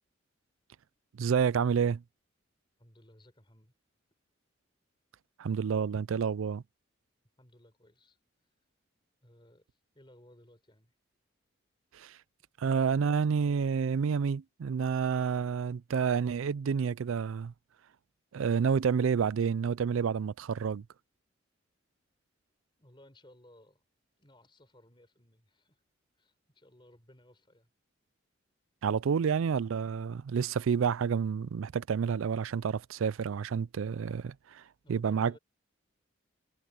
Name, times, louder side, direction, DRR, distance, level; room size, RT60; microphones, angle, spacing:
voice 1, 1.2-2.0 5.4-6.6 11.9-12.2 12.6-17.5 18.3-20.8 28.8-34.6 34.9-35.3, right 6 dB, 90° right, 0.4 m, -29 dB
voice 2, 2.8-3.7 7.4-8.2 9.2-10.9 22.8-23.8 24.2-25.8 26.2-27.7 29.2-29.4 34.8-35.4, left 1 dB, 25° left, 4.6 m, -59 dB
head